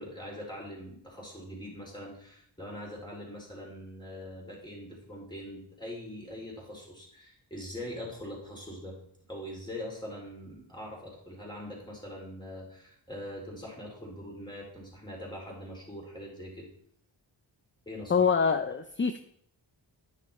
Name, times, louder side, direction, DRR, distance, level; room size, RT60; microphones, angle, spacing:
voice 1, 0.0-9.0 9.3-16.7 17.9-18.3, left 1 dB, 10° left, -2 dB, 3.9 m, -42 dB
voice 2, 18.1-19.2, left 5 dB, 25° left, 9 dB, 0.5 m, -25 dB
10.0 x 5.8 x 4.3 m, 0.66 s
wide cardioid pair, 60°, 47 cm